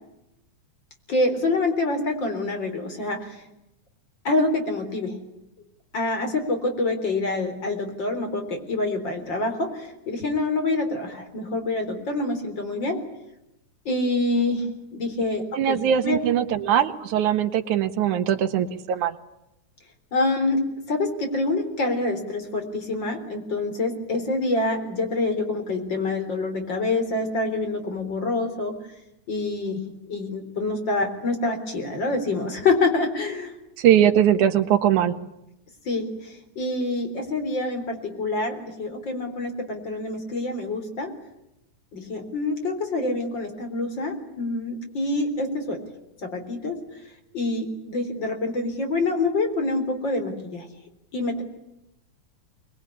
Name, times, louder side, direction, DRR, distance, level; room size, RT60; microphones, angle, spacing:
voice 1, 1.1-3.4 4.2-5.1 5.9-13.0 13.9-14.7 14.9-16.2 20.1-20.6 20.9-28.7 29.3-29.8 30.1-33.5 35.9-41.1 41.9-45.8 46.3-46.8 47.3-50.7 51.1-51.4, left 2 dB, 35° left, 5 dB, 4.4 m, -26 dB
voice 2, 15.6-19.1 33.8-35.1, right 10 dB, 75° right, 9 dB, 2.8 m, -21 dB
25.5 x 21.0 x 9.9 m, 0.88 s
omnidirectional pair, 3.5 m